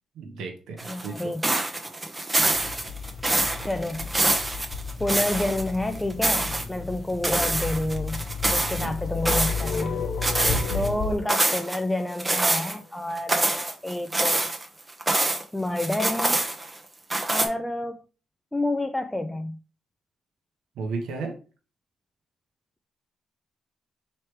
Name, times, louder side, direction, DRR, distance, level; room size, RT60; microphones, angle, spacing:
voice 1, 0.2-1.3 8.8-8.9 10.5-10.9 20.8-21.4, right 4 dB, 85° right, 0.9 m, -34 dB
sound 1, 0.8-5.7 6.0-6.6 7.2-8.9 9.3-9.9 10.2-10.9 11.3-11.8 12.2-12.7 13.2-15.4 15.8-16.8 17.1-17.5, right 2 dB, 20° right, 0.7 m, -25 dB
voice 2, 0.9-1.4 3.6-4.1 5.0-8.2 8.5-10.0 10.7-14.4 15.5-16.4 17.3-18.0 18.5-19.6, left 1 dB, 10° left, 0.3 m, -29 dB
sound 2, 2.4-11.1, left 5 dB, 45° left, 1.0 m, -33 dB
sound 3, 8.8-12.9, left 6 dB, 75° left, 0.6 m, -36 dB
3.2 x 3.1 x 4.5 m
cardioid pair, 90°, 0 cm